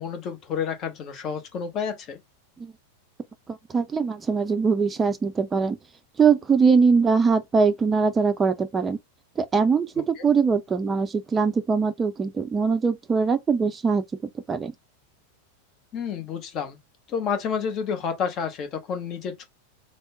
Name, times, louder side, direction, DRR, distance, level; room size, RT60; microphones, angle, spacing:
voice 1, 0.0-2.2 10.2-10.3 15.9-16.8 17.1-19.4, left 6 dB, 35° left, 0.9 m, -30 dB
voice 2, 3.5-5.8 6.2-9.0 9.4-14.0 14.5-14.7, right 5 dB, 15° right, 0.5 m, -22 dB
3.5 x 2.0 x 3.8 m
figure-of-eight pair, 90°, 0 cm